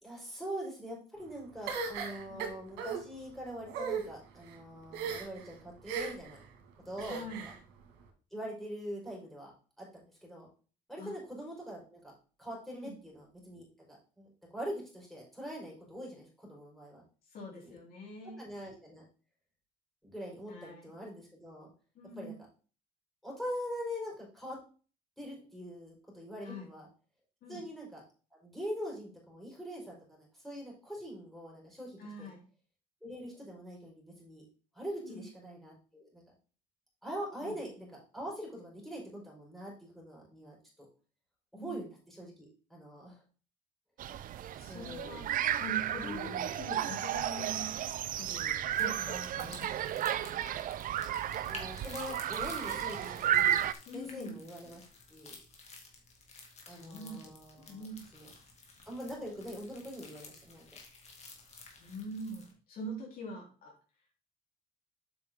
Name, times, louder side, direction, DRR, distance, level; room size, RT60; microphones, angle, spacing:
voice 1, 0.0-6.4 6.8-7.5 8.3-9.5 9.8-10.5 10.9-12.1 12.4-17.0 17.6-17.7 18.4-19.0 20.0-21.7 22.2-22.3 23.2-24.6 25.2-26.9 27.5-28.0 28.3-32.3 33.0-34.4 34.7-36.2 37.0-40.6 41.6-43.2 44.6-45.2 45.9-46.5 51.4-53.7 53.9-54.8 55.1-55.4 56.7-57.9 58.1-58.3 58.9-60.7, equal, ahead, -4 dB, 4.5 m, -43 dB
sound 1, 1.7-3.0 3.7-4.0 4.9-5.4 5.9-6.3 7.0-7.6, right 5 dB, 90° right, 2.0 m, -36 dB
voice 2, 7.1-7.5 11.0-11.1 12.7-12.9 17.3-18.5 20.5-20.9 21.9-22.4 26.4-26.7 27.4-27.6 32.0-32.4 35.0-35.2 37.4-37.5 41.5-41.8 44.6-45.3 45.6-47.9 48.2-50.1 53.9-54.3 56.6-57.3 57.6-58.1 61.8-63.7, equal, 60° left, -3 dB, 3.4 m, -44 dB
sound 2, 44.0-53.7, right 11 dB, 55° right, 0.5 m, -33 dB
sound 3, 48.7-62.5, left 4 dB, 40° left, 2.2 m, -52 dB
8.2 x 5.6 x 3.7 m, 0.38 s
cardioid pair, 110°, 17 cm